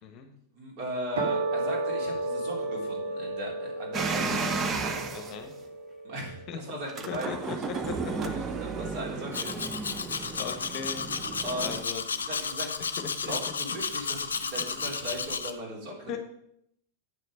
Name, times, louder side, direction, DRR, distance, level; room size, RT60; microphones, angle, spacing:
voice 1, 0.5-5.0 6.0-7.6 7.9-9.6 10.0-10.4 11.4-11.8 12.1-12.7 13.2-16.2, equal, 40° right, -2 dB, 3.4 m, -38 dB
sound 1, 1.2-7.7, right 2 dB, 60° right, 1.8 m, -34 dB
sound 2, 3.9-5.4 6.8-11.8, right 4 dB, 25° right, 0.8 m, -33 dB
voice 2, 5.1-5.5 6.5-6.8 7.1-8.3 10.4-11.2 11.6-12.0 13.0-13.3 16.1-16.2, left 7 dB, 35° left, 6 dB, 1.2 m, -38 dB
Domestic sounds home sounds, 9.3-15.5, left 5 dB, 70° left, 0.6 m, -33 dB
8.9 x 6.5 x 5.4 m, 0.75 s
figure-of-eight pair, 90°, 0 cm